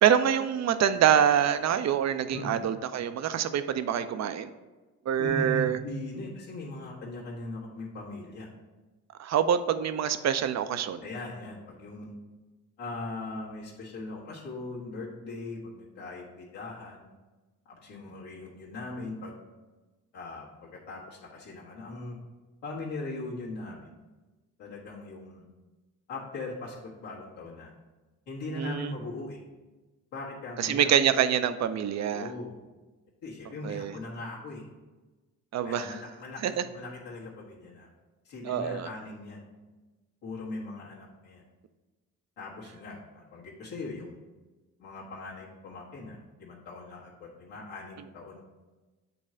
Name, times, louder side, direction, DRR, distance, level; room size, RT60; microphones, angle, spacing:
voice 1, 0.0-4.5 5.1-5.8 9.2-11.0 28.6-28.9 30.6-32.3 33.6-33.9 35.5-36.0 36.4-36.6 38.4-38.9, right 9 dB, 40° right, 11 dB, 0.5 m, -25 dB
voice 2, 5.2-8.5 11.0-12.1 12.8-17.1 17.7-19.4 20.1-22.2 22.6-23.9 24.6-25.4 26.1-27.7 28.3-29.4 30.1-31.1 32.0-32.5 33.2-34.6 35.6-37.9 38.2-39.4 40.2-41.4 42.4-44.2 44.8-48.4, left 2 dB, 75° left, -6 dB, 1.5 m, -39 dB
7.8 x 3.1 x 5.0 m, 1.2 s
hypercardioid pair, 40°, 43 cm